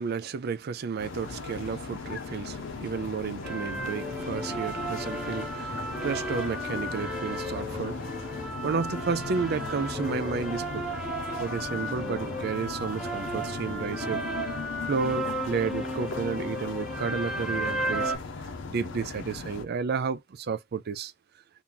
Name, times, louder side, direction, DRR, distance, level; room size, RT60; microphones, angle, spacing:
voice 1, 0.0-10.8 11.4-14.2 14.5-18.1 18.4-21.1, right 5 dB, 50° right, 0.4 m, -32 dB
sound 1, 1.0-19.6, left 4 dB, 65° left, 0.7 m, -38 dB
sound 2, 3.4-18.2, right 1 dB, 5° right, 0.9 m, -34 dB
2.9 x 2.7 x 3.6 m
head